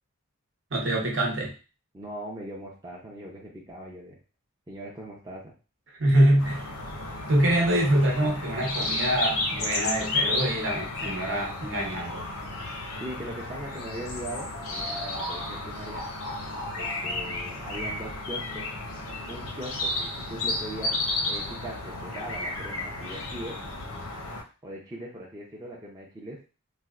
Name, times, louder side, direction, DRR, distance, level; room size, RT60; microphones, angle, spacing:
voice 1, 0.7-1.5 6.0-6.7 7.3-12.2, right 1 dB, 60° right, 0 dB, 0.8 m, -24 dB
voice 2, 1.9-4.2 4.7-5.5 13.0-16.0 16.7-18.7 19.3-21.0 21.2-23.6 24.6-26.4, right 1 dB, 15° right, -4 dB, 0.5 m, -40 dB
sound 1, 6.4-24.4, left 2 dB, 85° left, 0.7 m, -32 dB
4.1 x 2.1 x 2.3 m, 0.35 s
head